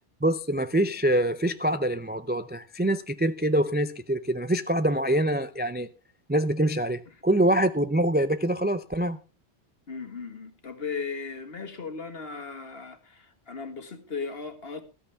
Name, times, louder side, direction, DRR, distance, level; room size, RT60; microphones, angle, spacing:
voice 1, 0.2-5.9 6.3-9.2, right 1 dB, 15° right, 0.4 m, -25 dB
voice 2, 9.9-14.8, left 5 dB, 60° left, 2.0 m, -37 dB
14.0 x 13.0 x 3.4 m
omnidirectional pair, 1.1 m